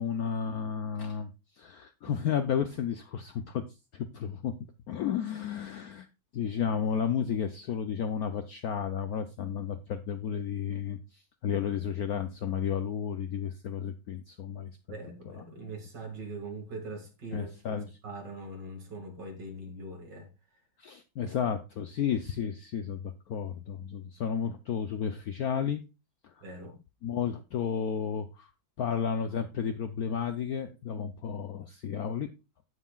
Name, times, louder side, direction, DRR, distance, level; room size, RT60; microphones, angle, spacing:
voice 1, 0.0-3.6 3.9-4.5 4.9-6.1 6.3-14.7 15.2-15.4 17.3-18.0 20.8-25.8 26.2-26.4 27.0-28.5 28.8-32.3, left 7 dB, 70° left, 0.9 m, -32 dB
voice 2, 14.9-20.3 21.2-21.3 26.4-26.8, right 2 dB, 60° right, 2.7 m, -42 dB
15.5 x 5.7 x 2.3 m
omnidirectional pair, 2.2 m